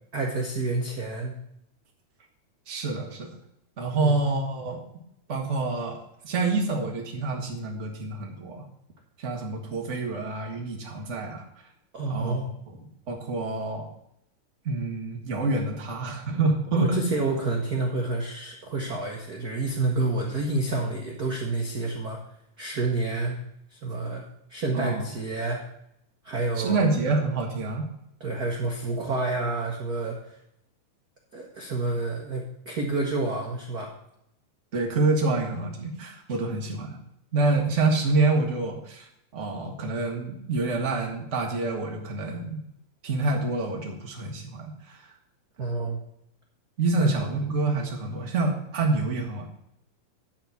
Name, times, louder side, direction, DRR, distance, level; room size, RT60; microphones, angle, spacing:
voice 1, 0.1-1.3 4.0-4.3 11.9-12.5 16.7-22.2 22.6-23.4 23.7-24.2 24.5-25.6 26.2-26.9 28.2-30.4 31.3-33.9 45.6-46.0 47.0-47.1, right 3 dB, 85° right, 0 dB, 0.8 m, -29 dB
voice 2, 2.7-3.3 3.8-4.8 5.3-8.6 9.2-11.4 12.1-12.4 13.1-13.9 14.6-17.1 24.7-25.0 26.5-27.9 34.7-37.0 37.3-42.6 43.0-45.1 46.8-49.5, right 3 dB, 35° right, 1 dB, 1.2 m, -27 dB
10.5 x 4.5 x 7.0 m, 0.78 s
omnidirectional pair, 3.7 m